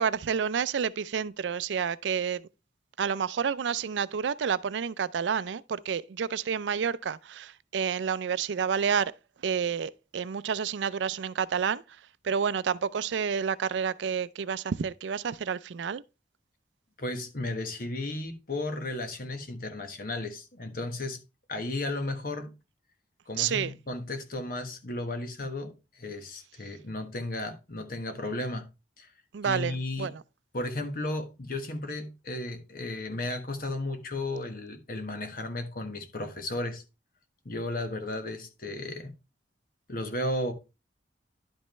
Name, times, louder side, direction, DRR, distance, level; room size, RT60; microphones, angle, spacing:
voice 1, 0.0-2.5 3.0-9.1 9.4-16.0 23.4-23.7 29.3-30.2, right 7 dB, 85° right, 0.4 m, -29 dB
voice 2, 17.0-21.2 21.5-22.5 23.3-28.7 29.0-29.1 29.4-30.1 30.5-36.8 37.4-39.1 39.9-40.5, left 2 dB, 55° left, 1.3 m, -34 dB
11.0 x 5.3 x 3.1 m
head